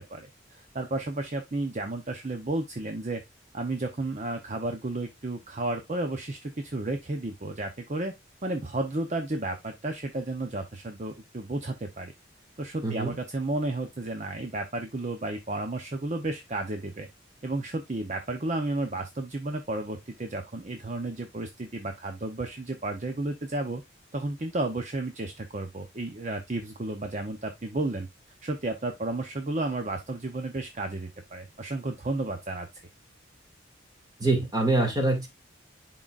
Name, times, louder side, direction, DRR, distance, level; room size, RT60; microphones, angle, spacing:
voice 1, 0.0-3.2 3.5-8.1 8.4-12.1 12.6-17.1 17.4-23.8 24.1-28.1 28.4-32.7, right 2 dB, 35° right, 0.7 m, -32 dB
voice 2, 34.2-35.3, right 2 dB, 20° right, 2.1 m, -24 dB
11.0 x 3.9 x 2.4 m
head